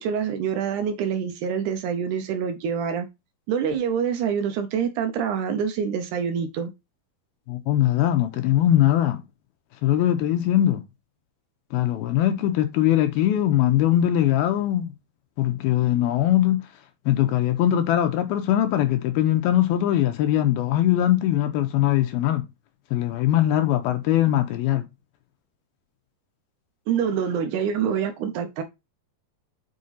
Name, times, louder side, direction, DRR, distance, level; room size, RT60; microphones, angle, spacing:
voice 1, 0.0-3.1 3.5-6.7 26.9-28.6, right 7 dB, 85° right, 1.7 m, -26 dB
voice 2, 7.5-9.2 9.8-10.8 11.7-14.9 15.4-16.6 17.1-22.4 22.9-24.9, left 12 dB, 80° left, 2.5 m, -21 dB
6.5 x 4.7 x 4.0 m
omnidirectional pair, 4.6 m